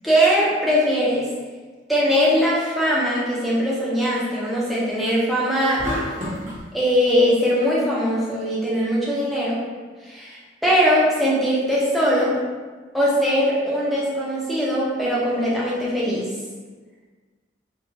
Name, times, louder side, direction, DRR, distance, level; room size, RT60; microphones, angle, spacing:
voice 1, 0.0-1.2 1.9-5.8 6.7-9.6 10.0-12.4 12.9-16.3, equal, ahead, -8 dB, 0.6 m, -21 dB
sound 1, 5.8-6.6, equal, 40° right, 1.1 m, -28 dB
4.4 x 2.3 x 2.7 m, 1.4 s
head